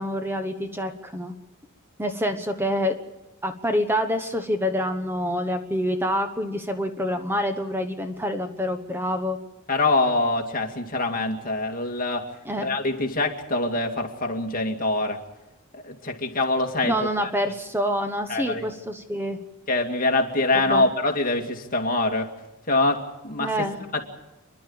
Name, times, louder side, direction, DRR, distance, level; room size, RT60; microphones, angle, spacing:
voice 1, 0.0-1.3 2.0-3.0 3.4-9.4 12.4-12.7 16.8-19.4 20.5-20.9 23.4-23.8, equal, 10° right, 7 dB, 1.1 m, -27 dB
voice 2, 9.7-12.3 12.6-15.2 15.8-17.3 18.3-18.7 19.7-22.3 22.7-23.5 23.9-24.0, left 2 dB, 40° left, 2 dB, 2.3 m, -24 dB
29.0 x 11.5 x 8.7 m, 1.1 s
head